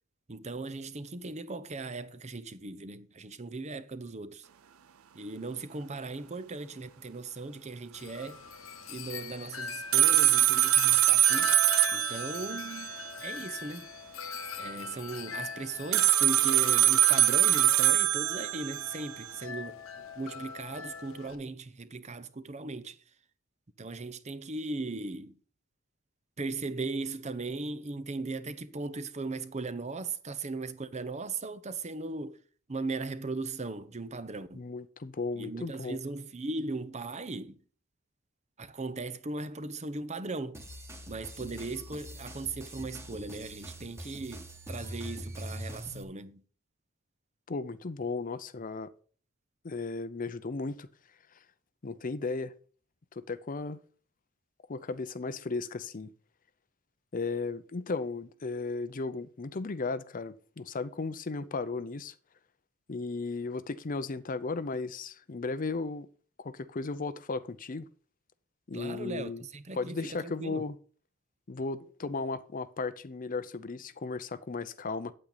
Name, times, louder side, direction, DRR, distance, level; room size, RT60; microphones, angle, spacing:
voice 1, 0.3-4.5 5.1-8.4 8.9-11.5 11.9-13.9 14.6-23.0 23.8-25.4 26.4-32.4 32.7-34.7 35.4-37.6 38.6-40.6 41.1-46.4 68.7-70.7, right 3 dB, 35° right, 0.7 m, -38 dB
Wind chime, 7.9-21.4, left 5 dB, 80° left, 1.1 m, -41 dB
sound 1, 9.9-13.3 15.9-19.3, right 12 dB, 85° right, 0.6 m, -24 dB
voice 2, 34.5-36.0 47.5-48.9 49.6-50.9 51.8-52.5 53.1-53.8 54.7-56.1 57.1-62.1 62.9-66.1 66.4-67.9 68.7-69.4 69.7-70.8 71.5-75.1, left 3 dB, 40° left, 0.6 m, -35 dB
sound 2, 40.5-46.0, equal, 15° right, 1.6 m, -43 dB
8.7 x 8.7 x 4.0 m
head